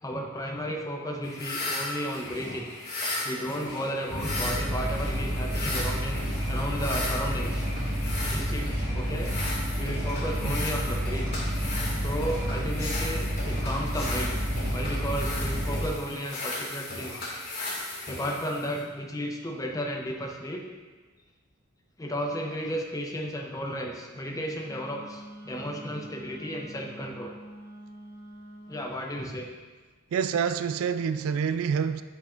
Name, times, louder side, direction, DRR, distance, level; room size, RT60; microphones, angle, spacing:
voice 1, 0.0-2.7 3.2-7.6 8.3-9.3 9.8-11.3 11.9-14.4 14.7-17.1 18.1-20.7 22.0-27.3 28.7-29.5, equal, 15° left, 1 dB, 0.7 m, -33 dB
sound 1, 1.2-18.8, left 2 dB, 50° left, 2.1 m, -36 dB
sound 2, 4.1-15.8, equal, 50° right, 1.8 m, -30 dB
Wind instrument woodwind instrument, 24.6-29.0, right 1 dB, 25° right, 1.9 m, -46 dB
voice 2, 30.1-32.0, right 7 dB, 75° right, 12 dB, 0.3 m, -27 dB
8.2 x 5.6 x 2.5 m, 1.4 s
head